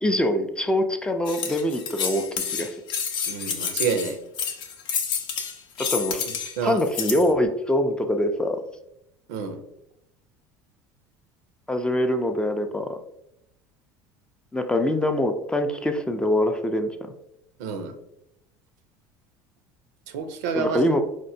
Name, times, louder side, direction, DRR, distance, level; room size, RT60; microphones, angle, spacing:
voice 1, 0.0-2.8 5.8-6.3 6.6-8.6 11.7-13.0 14.5-17.1 20.5-21.0, left 1 dB, 10° left, 6 dB, 0.3 m, -24 dB
sound 1, 1.3-7.3, left 6 dB, 60° left, 0.6 m, -29 dB
voice 2, 3.3-4.2 6.6-6.8 9.3-9.6 17.6-17.9 20.1-20.8, right 5 dB, 80° right, 8 dB, 0.5 m, -28 dB
4.2 x 2.1 x 2.6 m, 0.82 s
supercardioid pair, 90°, 9 cm